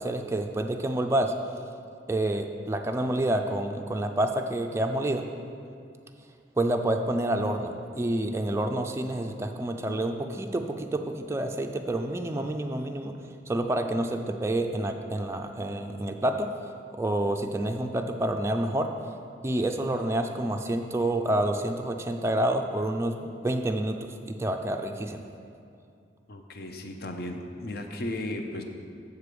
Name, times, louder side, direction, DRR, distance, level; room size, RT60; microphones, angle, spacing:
voice 1, 0.0-1.3 2.1-5.3 6.6-13.1 13.5-16.5 16.9-18.9 19.4-24.0 24.3-25.2, right 1 dB, 15° right, 4 dB, 0.3 m, -28 dB
voice 2, 26.3-28.6, left 1 dB, 55° left, 4 dB, 0.7 m, -35 dB
6.7 x 4.8 x 6.8 m, 2.4 s
head